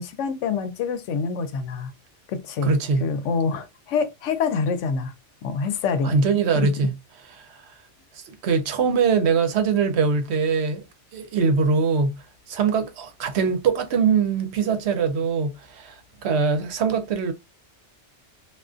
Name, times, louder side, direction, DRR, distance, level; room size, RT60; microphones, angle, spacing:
voice 1, 0.0-1.9 2.3-5.1 5.4-6.2 6.6-6.7, left 5 dB, 90° left, 0.9 m, -26 dB
voice 2, 2.6-3.0 6.0-6.9 7.4-7.7 8.1-10.8 11.1-12.2 12.5-17.3, right 5 dB, 70° right, 0.8 m, -22 dB
2.4 x 2.3 x 2.3 m
omnidirectional pair, 1.2 m